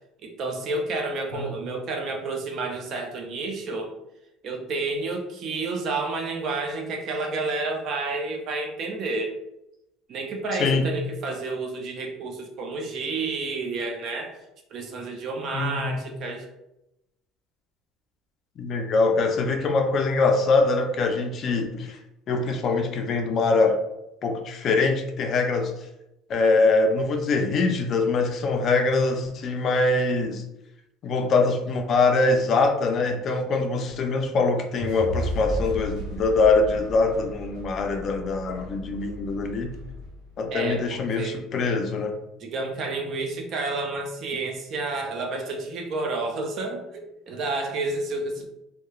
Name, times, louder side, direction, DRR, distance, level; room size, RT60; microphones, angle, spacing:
voice 1, 0.2-3.9 4.4-9.4 10.1-14.4 14.7-16.5 40.5-41.4 42.4-48.4, right 3 dB, 50° right, 3 dB, 0.5 m, -30 dB
voice 2, 15.5-16.0 18.6-22.0 22.3-23.8 24.2-25.7 26.3-30.4 31.0-39.7 40.4-42.2, left 3 dB, 45° left, 4 dB, 0.4 m, -23 dB
sound 1, 34.8-41.0, equal, 85° right, 0.8 m, -35 dB
2.9 x 2.1 x 2.3 m, 0.87 s
supercardioid pair, 115°, 0 cm